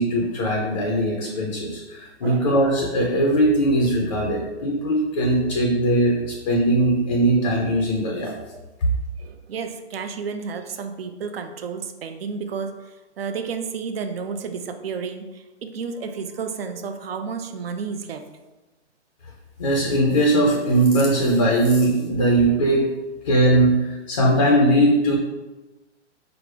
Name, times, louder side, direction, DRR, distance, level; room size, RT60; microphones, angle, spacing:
voice 1, 0.0-8.3 19.6-22.9 23.2-25.2, right 1 dB, 30° left, -1 dB, 0.4 m, -20 dB
voice 2, 2.2-2.5 9.2-18.3, right 5 dB, 55° right, 7 dB, 0.5 m, -32 dB
4.8 x 2.0 x 4.6 m, 1.1 s
hypercardioid pair, 160°, 36 cm